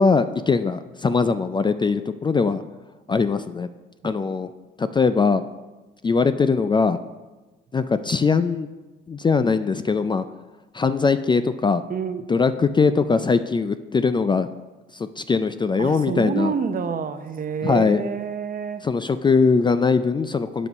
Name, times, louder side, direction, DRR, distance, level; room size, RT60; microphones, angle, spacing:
voice 1, 0.0-2.6 3.1-3.7 4.0-4.5 4.8-5.4 6.0-7.0 7.7-8.7 9.1-10.2 10.7-11.8 12.3-14.5 14.9-16.5 17.6-18.0 18.8-20.7, left 4 dB, 25° left, 11 dB, 0.3 m, -21 dB
voice 2, 11.9-12.5 15.8-18.8, right 6 dB, 45° right, 9 dB, 0.8 m, -28 dB
8.3 x 5.4 x 5.3 m, 1.2 s
cardioid pair, 90°, 20 cm